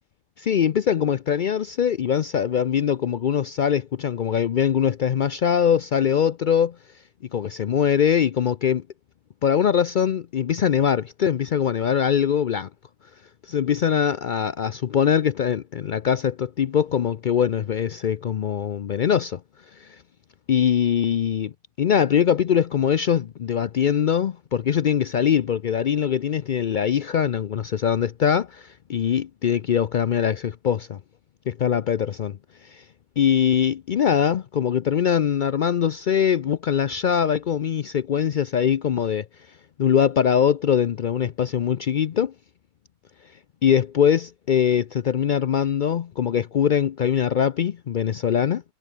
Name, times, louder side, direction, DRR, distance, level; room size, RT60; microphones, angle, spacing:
voice 1, 0.4-6.7 7.3-8.8 9.4-12.7 13.5-19.4 20.5-21.5 21.8-31.0 31.5-32.4 32.7-32.8 33.2-39.2 39.8-42.3 43.6-48.6, left 8 dB, 85° left, 0.4 m, -22 dB
omnidirectional pair, 1.5 m